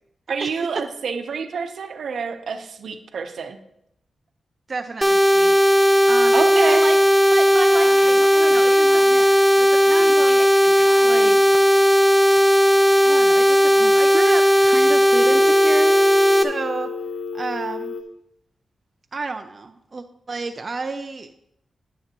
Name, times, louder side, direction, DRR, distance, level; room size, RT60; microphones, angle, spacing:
voice 1, 0.3-3.6 6.3-6.8, right 5 dB, 75° right, 7 dB, 0.8 m, -27 dB
voice 2, 4.7-5.6 6.1-7.0 7.3-10.8 11.0-11.6 13.0-16.9 17.3-18.0 19.1-21.3, right 3 dB, 45° right, 6 dB, 0.5 m, -31 dB
sound 1, 5.0-16.4, equal, 5° right, 0.7 m, -16 dB
Telephone, 7.6-9.3 9.9-11.6 15.1-18.0, left 4 dB, 55° left, 0.8 m, -33 dB
9.9 x 9.1 x 3.0 m, 0.78 s
cardioid pair, 75°, 0 cm